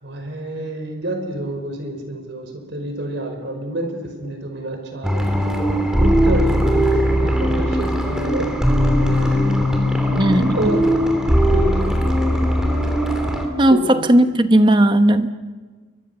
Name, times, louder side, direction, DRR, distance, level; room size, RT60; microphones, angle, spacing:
voice 1, 0.0-5.3 6.0-8.5 9.1-9.5 10.3-10.9 11.5-12.0 13.7-14.0, right 1 dB, 65° right, 5 dB, 5.1 m, -28 dB
sound 1, 5.0-13.5, equal, 5° right, 3.1 m, -19 dB
voice 2, 10.2-10.7 13.6-15.3, right 1 dB, 25° right, 9 dB, 1.1 m, -15 dB
29.5 x 23.5 x 7.0 m, 1.4 s
head